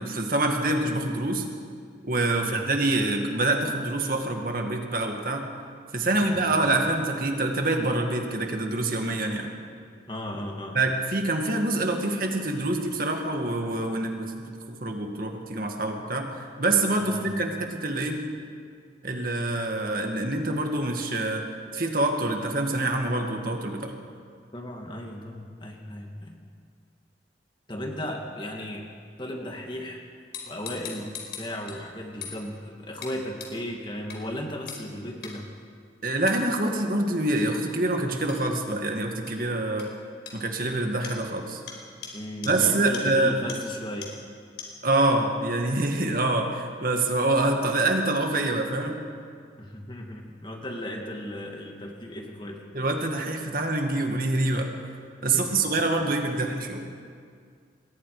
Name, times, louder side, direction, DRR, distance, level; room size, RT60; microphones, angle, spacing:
voice 1, 0.0-1.5 2.0-5.5 5.9-9.5 10.7-14.3 14.8-18.2 19.0-21.4 21.7-24.0 36.0-39.9 40.3-41.6 42.4-43.4 44.8-49.0 52.7-54.7 55.2-56.9, right 2 dB, 50° right, 3 dB, 2.2 m, -26 dB
voice 2, 6.1-6.7 10.1-10.8 17.0-17.2 24.5-26.4 27.7-28.9 29.2-30.0 30.4-31.1 31.4-35.4 42.1-44.1 49.6-52.7 55.3-55.7, left 1 dB, 25° left, 1 dB, 2.4 m, -36 dB
sound 1, 30.3-31.8 32.2-32.4 33.0-33.1 33.4-33.5 34.1-34.2 34.7-34.8 35.2-35.3 36.3-36.4 38.3-38.4 39.3-39.4 39.8-39.9 40.3-40.4 41.0-41.2 41.7-41.8 42.0-42.1 42.4-42.5 42.9-43.0 43.5-43.6 44.0-44.1 44.6-44.7, left 7 dB, 65° left, 4.4 m, -39 dB
27.5 x 21.5 x 5.1 m, 2.1 s
head